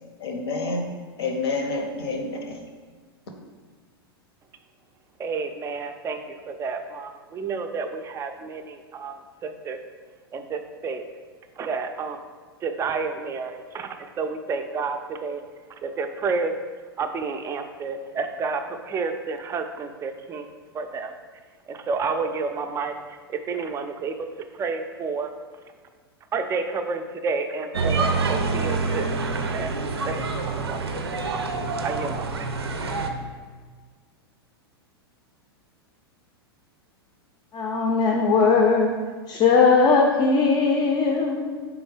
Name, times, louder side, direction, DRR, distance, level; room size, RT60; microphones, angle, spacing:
voice 1, 0.2-0.9 1.2-2.6, left 3 dB, 70° left, 3 dB, 0.7 m, -28 dB
voice 2, 5.2-9.8 10.3-11.0 11.6-12.2 12.6-15.4 15.8-16.5 17.0-21.1 21.7-24.1 24.5-25.3 26.3-29.1 29.5-29.7 30.0-30.8 31.2-31.4 31.8-32.5, right 4 dB, 20° right, 7 dB, 0.3 m, -30 dB
sound 1, 27.7-33.1, right 4 dB, 85° right, 0.5 m, -26 dB
voice 3, 37.5-38.9 39.3-41.7, left 4 dB, 35° left, 1 dB, 0.5 m, -19 dB
4.3 x 3.5 x 3.3 m, 1.5 s
hypercardioid pair, 100°, 13 cm